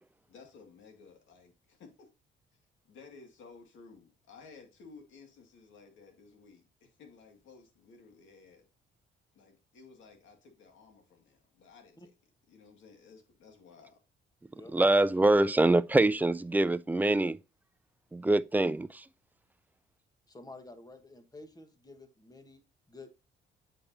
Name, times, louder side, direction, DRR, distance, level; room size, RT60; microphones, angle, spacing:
voice 1, 0.3-2.1 2.8-8.7 9.3-12.1 12.5-14.0, left 4 dB, 75° left, 2.1 m, -55 dB
voice 2, 14.7-17.4 18.1-19.0, right 2 dB, 10° right, 0.3 m, -24 dB
voice 3, 20.3-22.6 22.9-23.1, left 2 dB, 20° left, 1.4 m, -50 dB
8.3 x 5.4 x 2.7 m
cardioid pair, 90°, 20 cm